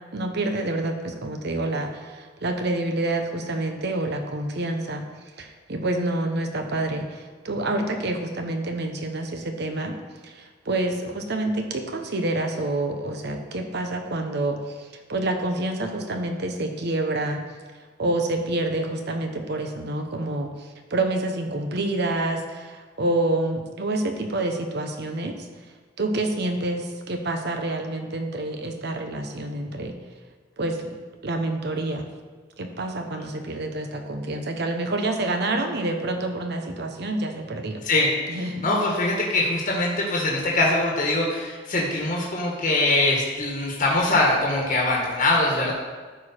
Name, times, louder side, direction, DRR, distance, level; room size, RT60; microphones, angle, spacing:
voice 1, 0.1-5.0 5.4-10.0 10.2-17.4 18.0-25.5 26.0-30.0 30.6-31.0 31.2-32.1 32.6-37.8 38.3-38.6, right 2 dB, 60° right, 5 dB, 1.0 m, -28 dB
voice 2, 37.8-45.7, left 2 dB, 45° left, -2 dB, 1.5 m, -23 dB
12.5 x 5.0 x 4.4 m, 1.4 s
head